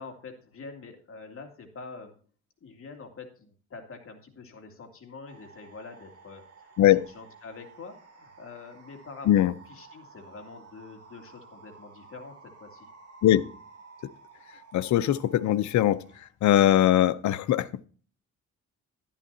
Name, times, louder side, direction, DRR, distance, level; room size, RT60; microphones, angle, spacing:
voice 1, 0.0-2.1 2.6-6.7 7.1-9.3 9.7-12.9, left 4 dB, 45° left, 2.5 m, -45 dB
sound 1, 5.3-16.3, right 4 dB, 55° right, 2.7 m, -53 dB
voice 2, 14.7-17.9, left 12 dB, 70° left, 0.7 m, -21 dB
11.5 x 10.5 x 2.8 m
cardioid pair, 90°, 30 cm